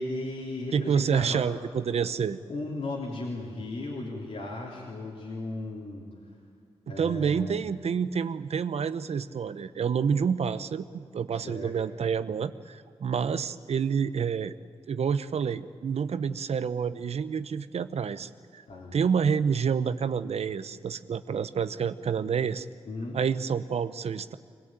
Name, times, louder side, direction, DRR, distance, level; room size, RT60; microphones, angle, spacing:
voice 1, 0.0-1.4 2.0-2.2 2.5-6.1 6.9-7.6 11.3-11.7 18.7-19.0 22.9-23.2, left 2 dB, 70° left, -4 dB, 3.5 m, -36 dB
voice 2, 0.7-2.4 6.9-14.5 14.9-18.6 18.9-22.7 23.1-24.4, right 6 dB, 75° right, 13 dB, 0.8 m, -28 dB
25.0 x 17.5 x 9.1 m, 2.4 s
cardioid pair, 60°, 11 cm